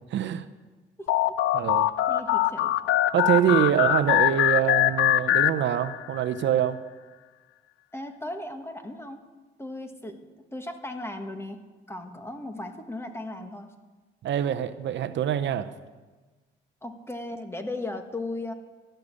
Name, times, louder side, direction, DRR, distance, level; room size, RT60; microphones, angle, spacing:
voice 1, 0.1-0.5 1.5-1.9 3.1-6.8 14.2-15.7, right 10 dB, 65° right, 13 dB, 0.7 m, -25 dB
voice 2, 1.0-1.4 2.1-2.7 7.9-9.2 9.6-10.2 10.5-11.6 11.9-13.7 16.8-18.5, left 2 dB, 10° left, 6 dB, 1.5 m, -36 dB
sound 1, 1.1-6.2, left 14 dB, 85° left, 0.5 m, -23 dB
14.0 x 6.6 x 9.7 m, 1.3 s
cardioid pair, 90°, 20 cm